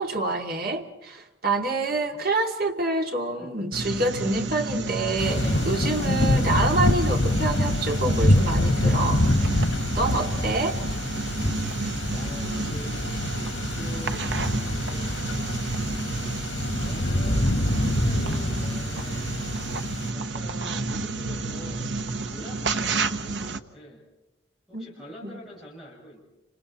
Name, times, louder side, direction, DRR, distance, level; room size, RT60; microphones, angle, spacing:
voice 1, 0.0-9.2 9.9-10.8 24.7-24.9 25.2-25.4, right 2 dB, 50° right, 3 dB, 2.5 m, -27 dB
voice 2, 3.3-3.6 10.2-10.8 12.1-19.2 20.1-24.0 24.7-26.2, equal, ahead, -4 dB, 6.8 m, -45 dB
sound 1, 3.7-23.6, right 3 dB, 70° right, 1.1 m, -31 dB
Thunder / Rain, 5.2-20.1, left 1 dB, 80° left, 2.1 m, -25 dB
30.0 x 26.5 x 4.3 m, 0.94 s
head